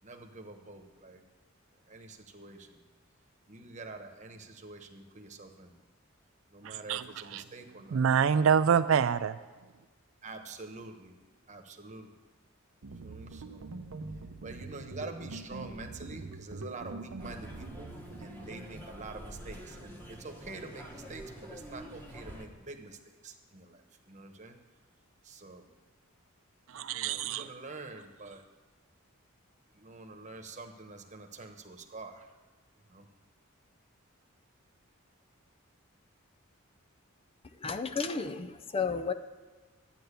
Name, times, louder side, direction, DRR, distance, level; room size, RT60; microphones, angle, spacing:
voice 1, 0.0-1.2 1.9-2.8 3.5-5.7 6.5-8.0 10.2-11.1 11.5-12.1 13.0-13.7 14.4-17.9 18.2-24.6 25.2-25.7 26.9-28.4 29.7-32.3 32.9-33.1, right 3 dB, 35° right, 1.2 m, -46 dB
voice 2, 6.6-7.0 7.3-7.4 7.9-9.4 26.7-27.5, right 7 dB, 65° right, 0.4 m, -26 dB
sound 1, 12.8-22.3, right 3 dB, 80° right, 0.7 m, -46 dB
sound 2, 17.2-22.5, equal, 10° left, 1.4 m, -47 dB
voice 3, 37.6-39.1, left 5 dB, 25° left, 0.5 m, -32 dB
12.0 x 9.2 x 6.8 m
head